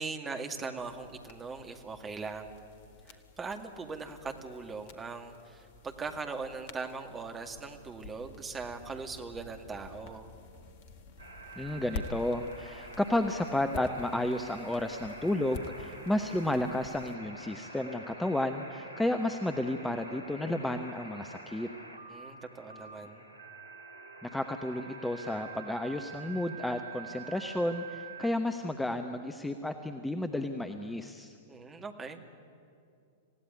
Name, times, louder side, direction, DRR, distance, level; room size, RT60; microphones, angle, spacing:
voice 1, 0.0-2.5 3.1-10.3 22.1-23.3 31.5-32.2, right 4 dB, 15° right, 4 dB, 2.2 m, -40 dB
sound 1, 0.7-17.1, left 3 dB, 50° left, 1.8 m, -49 dB
sound 2, 11.2-28.3, right 3 dB, 80° right, 2.8 m, -47 dB
voice 2, 11.6-21.7 24.2-31.3, left 1 dB, 5° left, 6 dB, 1.0 m, -32 dB
27.0 x 16.5 x 9.8 m, 2.4 s
figure-of-eight pair, 100°, 0 cm